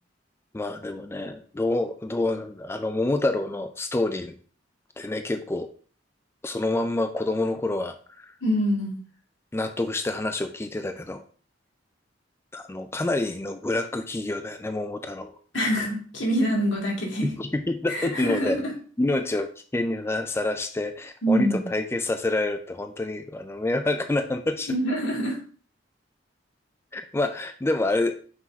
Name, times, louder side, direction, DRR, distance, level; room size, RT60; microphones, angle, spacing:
voice 1, 0.5-4.4 5.0-5.7 6.4-8.3 9.5-11.2 12.5-15.3 15.6-15.8 17.2-18.6 19.0-24.7 26.9-28.2, left 2 dB, 15° left, 8 dB, 0.3 m, -27 dB
voice 2, 8.4-9.0 15.5-17.3 17.9-18.6 21.2-21.6 24.7-25.4, equal, 80° left, -2 dB, 2.3 m, -25 dB
6.1 x 4.1 x 4.5 m, 0.43 s
head